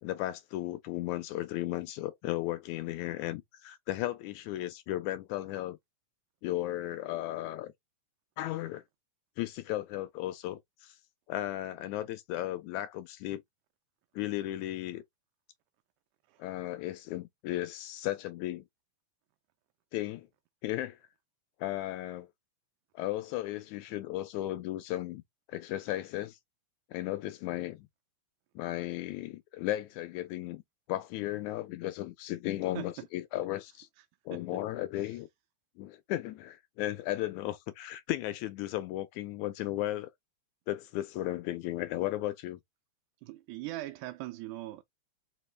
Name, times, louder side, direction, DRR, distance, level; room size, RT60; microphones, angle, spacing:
voice 1, 0.0-5.8 6.4-7.7 8.4-8.8 9.4-11.0 11.3-13.4 14.1-15.0 16.4-18.6 19.9-20.3 20.6-21.0 21.6-22.3 22.9-25.2 25.5-26.4 26.9-27.9 28.5-30.6 30.9-33.9 34.3-35.3 35.8-40.1 40.7-42.6, left 15 dB, 80° left, 1.8 m, -35 dB
voice 2, 43.2-44.8, right 17 dB, 80° right, 2.0 m, -41 dB
4.9 x 2.9 x 3.2 m
omnidirectional pair, 3.5 m